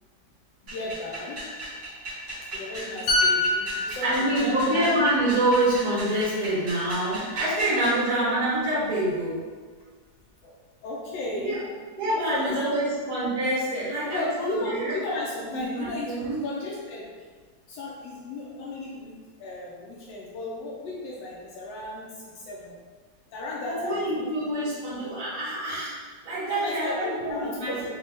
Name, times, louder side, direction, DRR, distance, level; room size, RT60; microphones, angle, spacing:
voice 1, 0.6-1.5 2.4-4.8 10.4-10.5 10.8-11.6 12.2-12.8 14.0-17.3 17.7-19.1 19.4-22.8 23.3-24.3 24.6-25.0 26.5-27.9, left 2 dB, 85° left, -5 dB, 1.4 m, -35 dB
sound 1, 0.7-8.0, right 1 dB, 70° right, 2.1 m, -37 dB
sound 2, 3.1-6.7 7.0-7.2, left 2 dB, 60° left, 1.2 m, -28 dB
voice 2, 4.0-9.4 11.4-11.6 12.0-14.9 15.5-16.4 23.7-27.9, right 1 dB, 45° right, -11 dB, 1.6 m, -26 dB
5.3 x 2.2 x 3.4 m, 1.6 s
omnidirectional pair, 2.0 m